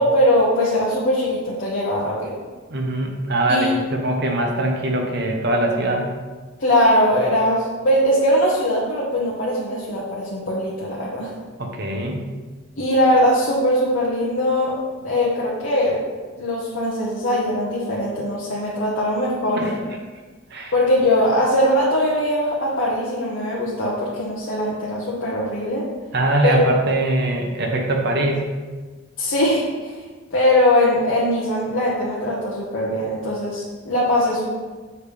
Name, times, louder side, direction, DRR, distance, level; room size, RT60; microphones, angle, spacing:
voice 1, 0.0-2.4 3.5-3.7 6.6-11.3 12.8-16.0 16.4-19.7 20.7-25.8 26.4-26.6 29.2-30.0 30.3-34.5, left 1 dB, 60° left, -7 dB, 1.0 m, -21 dB
voice 2, 2.7-6.1 11.6-12.2 19.6-19.8 20.5-20.7 26.1-28.5, right 1 dB, 50° right, 1 dB, 0.9 m, -22 dB
7.0 x 3.4 x 5.1 m, 1.4 s
head